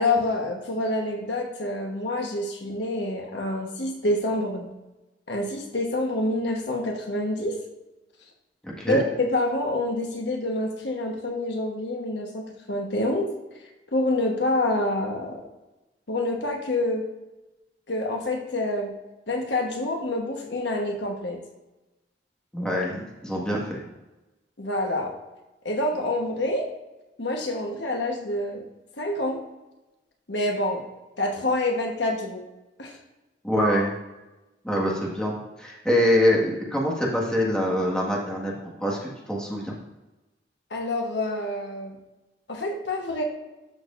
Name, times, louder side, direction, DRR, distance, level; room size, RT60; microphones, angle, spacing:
voice 1, 0.0-4.7 5.3-7.6 8.9-13.3 13.9-15.4 16.1-17.0 17.9-18.9 19.3-21.4 24.6-25.1 25.6-26.6 27.2-28.6 29.0-29.4 30.3-30.8 31.2-32.4 32.8-33.0 40.7-42.0 42.5-43.2, left 2 dB, 75° left, 1 dB, 1.3 m, -27 dB
voice 2, 8.6-9.0 22.5-23.8 33.4-33.9 34.6-39.7, equal, 5° left, -4 dB, 1.7 m, -25 dB
13.0 x 6.4 x 2.6 m, 1.0 s
head